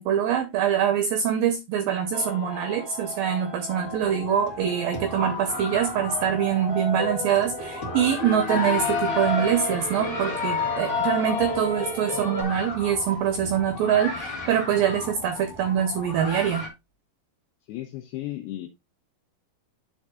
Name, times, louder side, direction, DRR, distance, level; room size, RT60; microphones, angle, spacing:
voice 1, 0.0-16.7, right 9 dB, 80° right, 2.1 m, -24 dB
sound 1, 2.1-12.4, left 3 dB, 10° right, 1.7 m, -31 dB
sound 2, 3.7-16.7, left 2 dB, 45° left, 1.4 m, -36 dB
voice 2, 17.7-18.7, left 15 dB, 80° left, 2.4 m, -34 dB
11.5 x 4.5 x 2.3 m
omnidirectional pair, 5.0 m